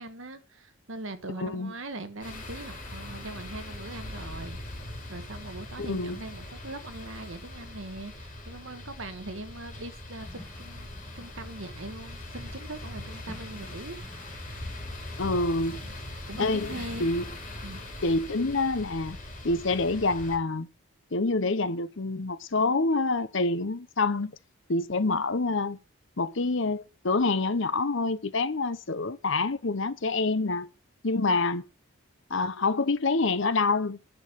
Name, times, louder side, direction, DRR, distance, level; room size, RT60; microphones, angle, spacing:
voice 1, 0.0-4.6 5.1-14.0 14.5-14.6 15.8-15.9 16.3-17.2 17.6-17.8, right 2 dB, 65° right, 1.4 m, -41 dB
voice 2, 1.4-1.7 5.8-6.2 15.2-15.8 16.4-16.7 17.0-17.2 18.0-19.2 19.4-20.7 21.1-24.3 24.7-25.8 26.2-30.7 31.0-31.6 32.3-34.0, left 3 dB, 60° left, 0.8 m, -27 dB
sound 1, 2.2-20.4, left 1 dB, 35° left, 4.3 m, -41 dB
sound 2, 10.2-17.9, equal, 10° left, 1.8 m, -52 dB
10.5 x 6.2 x 6.2 m
head